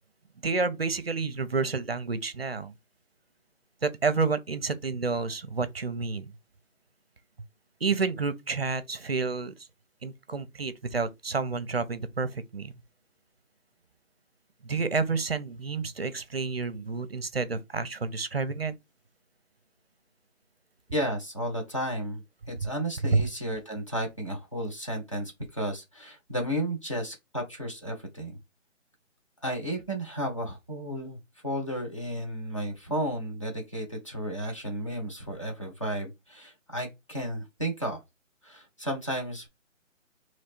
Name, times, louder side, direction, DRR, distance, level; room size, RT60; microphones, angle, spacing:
voice 1, 0.4-2.7 3.8-6.3 7.8-9.6 10.0-12.7 14.6-18.7 23.1-23.2, right 4 dB, 50° right, 0.7 m, -29 dB
voice 2, 20.9-22.2 22.5-28.4 29.4-31.2 31.4-38.0 38.4-39.5, right 1 dB, 25° left, 0.9 m, -33 dB
3.9 x 3.1 x 4.3 m
hypercardioid pair, 180°, 39 cm